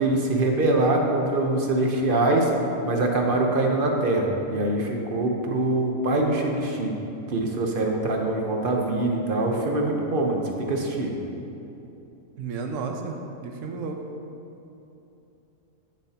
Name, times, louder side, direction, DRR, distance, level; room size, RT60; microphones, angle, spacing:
voice 1, 0.0-2.5 2.8-6.9 7.3-11.1, right 2 dB, 45° right, 1 dB, 1.0 m, -24 dB
voice 2, 12.4-14.0, right 4 dB, 65° right, 3 dB, 1.1 m, -32 dB
14.5 x 6.9 x 2.9 m, 2.9 s
omnidirectional pair, 1.5 m